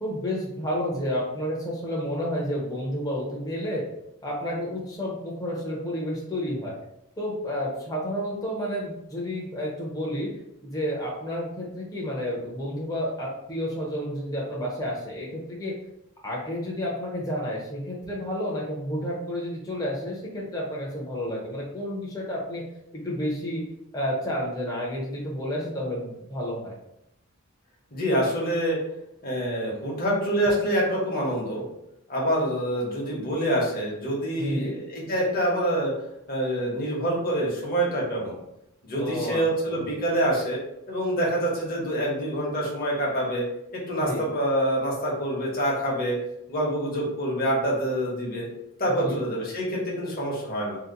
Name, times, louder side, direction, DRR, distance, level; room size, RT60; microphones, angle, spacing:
voice 1, 0.0-3.8 4.2-6.8 7.2-10.3 10.6-15.7 16.2-22.6 22.9-23.6 23.9-26.7 34.4-34.8 38.9-39.9 44.0-44.3 49.0-49.2, equal, 15° left, -4 dB, 0.6 m, -30 dB
voice 2, 27.9-28.8 29.2-31.6 32.1-35.9 36.3-38.4 38.8-40.6 40.9-43.4 43.9-46.2 46.5-48.5 48.8-50.8, right 1 dB, 40° left, -3 dB, 0.9 m, -26 dB
2.7 x 2.1 x 3.7 m, 0.81 s
head